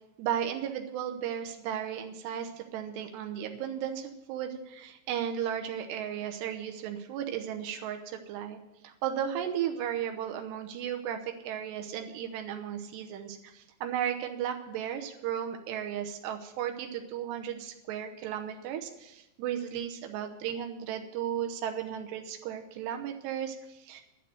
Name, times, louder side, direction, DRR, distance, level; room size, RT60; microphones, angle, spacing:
voice 1, 0.2-24.0, right 9 dB, 85° right, 5 dB, 3.1 m, -35 dB
11.5 x 6.9 x 9.0 m, 0.92 s
omnidirectional pair, 4.8 m